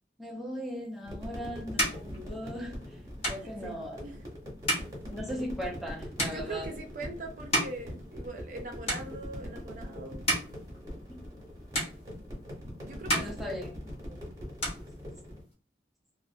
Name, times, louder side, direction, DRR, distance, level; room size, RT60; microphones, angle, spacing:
voice 1, 0.2-2.8 3.3-4.0 5.1-6.7 11.1-11.3 13.1-13.7, equal, ahead, 0.6 m, -38 dB
sound 1, 0.9-8.6 8.8-9.6 10.0-11.5 11.7-12.6 12.9-14.2 14.4-15.5, equal, 35° left, 0.8 m, -34 dB
sound 2, 1.0-15.4, equal, 20° right, 0.9 m, -42 dB
voice 2, 3.4-4.2 6.2-10.2 12.8-13.4, right 2 dB, 45° right, 0.5 m, -42 dB
2.5 x 2.0 x 2.6 m
head